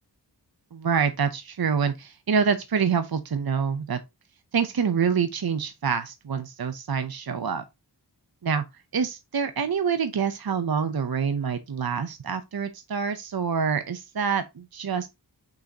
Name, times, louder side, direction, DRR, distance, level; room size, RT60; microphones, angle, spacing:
voice 1, 0.7-4.0 4.5-7.6 8.4-8.6 8.9-15.1, right 6 dB, 55° right, 0.7 m, -26 dB
6.4 x 5.6 x 2.8 m
wide cardioid pair, 55°, 43 cm